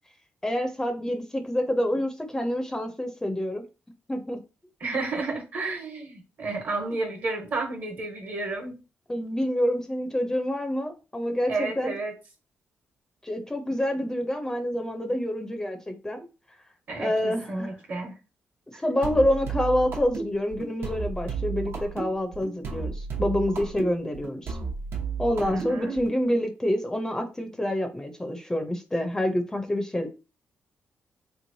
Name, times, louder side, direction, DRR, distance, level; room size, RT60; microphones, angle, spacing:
voice 1, 0.4-3.6 4.1-4.4 9.1-12.0 13.2-16.3 17.0-17.7 18.7-24.6 25.2-30.1, left 1 dB, 15° left, 5 dB, 0.5 m, -27 dB
voice 2, 4.8-8.8 11.5-12.1 16.9-18.1 18.7-18.8 25.4-26.0, right 3 dB, 55° right, 3 dB, 1.2 m, -31 dB
sound 1, 19.0-26.2, right 5 dB, 70° right, 0.8 m, -33 dB
3.4 x 3.0 x 2.7 m, 0.31 s
cardioid pair, 105°, 4 cm